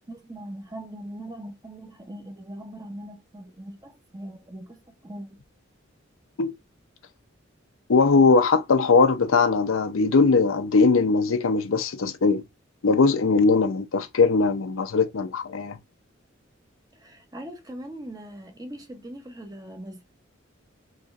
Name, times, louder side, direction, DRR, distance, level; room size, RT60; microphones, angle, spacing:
voice 1, 0.1-5.4 16.9-20.0, right 1 dB, 20° right, 0.7 m, -40 dB
voice 2, 7.9-12.4 12.8-15.8, left 4 dB, 90° left, 0.6 m, -20 dB
4.1 x 3.0 x 2.4 m
head